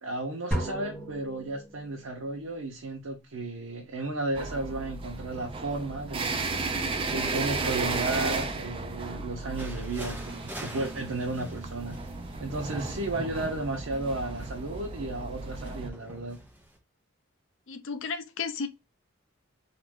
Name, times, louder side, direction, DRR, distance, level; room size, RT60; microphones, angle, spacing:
voice 1, 0.0-6.4 7.1-12.0 12.4-16.4, right 2 dB, 80° right, 0.7 m, -34 dB
sound 1, 0.5-2.2, equal, 5° left, 1.0 m, -34 dB
sound 2, 4.3-15.9, right 3 dB, 25° right, 0.3 m, -34 dB
sound 3, 9.6-16.8, right 1 dB, 10° right, 0.7 m, -47 dB
voice 2, 17.7-18.7, left 5 dB, 65° left, 0.5 m, -33 dB
3.0 x 2.5 x 3.5 m
head